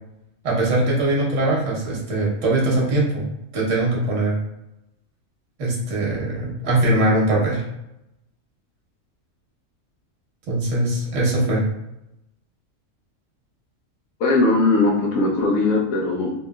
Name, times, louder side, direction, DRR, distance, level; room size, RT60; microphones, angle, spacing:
voice 1, 0.4-3.2 3.5-4.4 5.6-7.6 10.5-11.6, right 2 dB, 65° right, -4 dB, 1.3 m, -21 dB
voice 2, 14.2-16.3, left 2 dB, 90° left, -3 dB, 1.1 m, -19 dB
3.0 x 2.8 x 2.2 m, 0.87 s
omnidirectional pair, 1.4 m